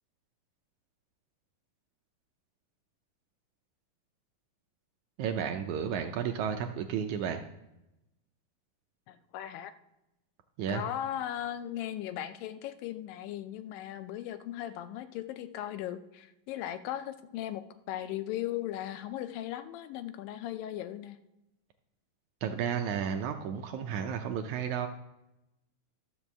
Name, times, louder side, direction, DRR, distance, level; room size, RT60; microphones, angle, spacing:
voice 1, 5.2-7.4 10.6-10.8 22.4-24.9, right 8 dB, 75° right, 5 dB, 1.8 m, -32 dB
voice 2, 9.1-9.7 10.7-21.2, left 12 dB, 85° left, 11 dB, 2.4 m, -37 dB
13.0 x 5.3 x 7.2 m, 0.94 s
omnidirectional pair, 3.9 m